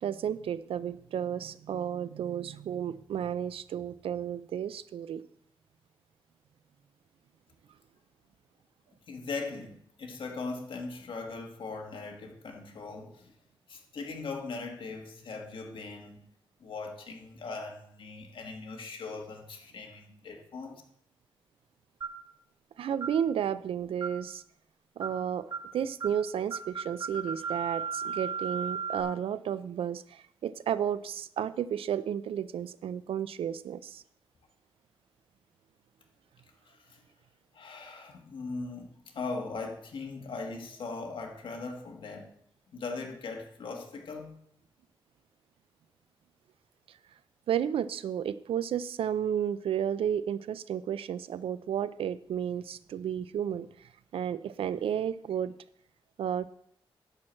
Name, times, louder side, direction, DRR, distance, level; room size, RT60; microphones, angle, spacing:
voice 1, 0.0-5.2 22.8-24.4 25.0-34.0 47.5-55.5 56.2-56.5, right 9 dB, 90° right, 15 dB, 0.4 m, -32 dB
voice 2, 9.1-13.3 13.7-16.2 16.6-20.8 36.6-37.0 37.5-42.3 42.7-44.4, left 3 dB, 65° left, 2 dB, 1.6 m, -40 dB
sound 1, 22.0-22.3 23.0-23.2 24.0-24.3 25.0-25.2 25.5-25.7 26.0-26.2 26.5-29.0, right 6 dB, 50° right, 1.4 m, -35 dB
10.5 x 4.5 x 7.5 m, 0.67 s
wide cardioid pair, 110°, 9 cm